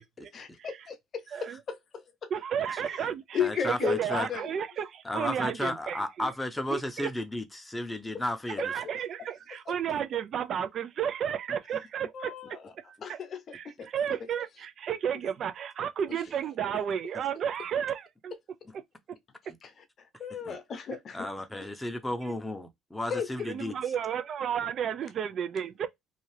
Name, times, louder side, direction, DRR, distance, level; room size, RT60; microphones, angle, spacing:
voice 1, 0.3-2.3 2.8-3.1 3.3-4.5 8.8-8.9 9.7-9.8 12.1-12.7 13.0-13.9 16.1-16.2 16.7-16.8 19.6-21.5 23.1-23.3, left 7 dB, 50° left, 0.7 m, -35 dB
voice 2, 2.3-3.4 3.6-6.3 6.7-7.1 8.6-12.3 13.1-13.2 13.5-18.3 23.5-25.9, right 8 dB, 55° right, 0.4 m, -32 dB
voice 3, 3.4-4.3 5.0-8.6 20.5-20.6 21.1-23.7, left 1 dB, 10° left, 0.7 m, -33 dB
2.7 x 2.4 x 3.2 m
supercardioid pair, 75°, 0 cm